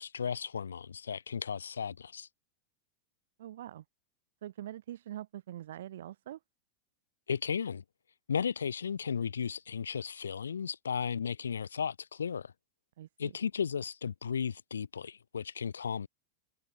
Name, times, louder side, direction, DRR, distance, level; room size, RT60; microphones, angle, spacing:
voice 1, 0.0-2.3 7.3-7.8 8.3-12.5 13.2-16.1, left 7 dB, 85° left, 1.1 m, -35 dB
voice 2, 3.4-3.8 4.4-6.4 13.0-13.3, right 12 dB, 70° right, 1.7 m, -44 dB
hypercardioid pair, 95°, 0 cm